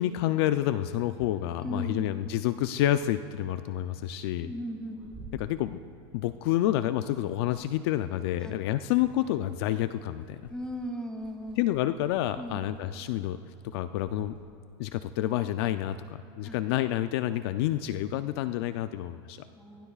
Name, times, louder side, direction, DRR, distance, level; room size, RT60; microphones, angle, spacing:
voice 1, 0.0-4.5 5.4-5.8 6.1-10.4 11.6-13.4 13.7-14.4 14.8-19.4, left 13 dB, 65° left, 11 dB, 0.5 m, -29 dB
voice 2, 1.6-2.2 4.4-5.0 8.4-8.6 10.5-11.6 12.4-12.7 16.4-16.6 19.6-19.9, equal, 5° left, 3 dB, 2.2 m, -37 dB
Liquid, 4.5-6.5 6.8-14.4, right 2 dB, 10° right, 4.9 m, -55 dB
23.5 x 22.5 x 2.4 m, 2.7 s
supercardioid pair, 125°, 14 cm